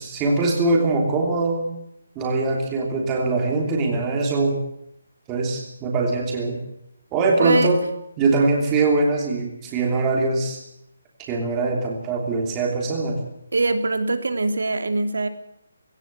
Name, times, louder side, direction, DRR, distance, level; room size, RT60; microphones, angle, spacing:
voice 1, 0.0-1.7 2.1-4.6 5.3-6.6 7.1-7.8 8.2-10.6 11.3-13.2, right 3 dB, 10° right, 0 dB, 3.1 m, -22 dB
voice 2, 7.4-7.7 13.5-15.3, right 3 dB, 75° right, 8 dB, 3.0 m, -23 dB
18.5 x 18.0 x 8.1 m, 0.75 s
hypercardioid pair, 180°, 0 cm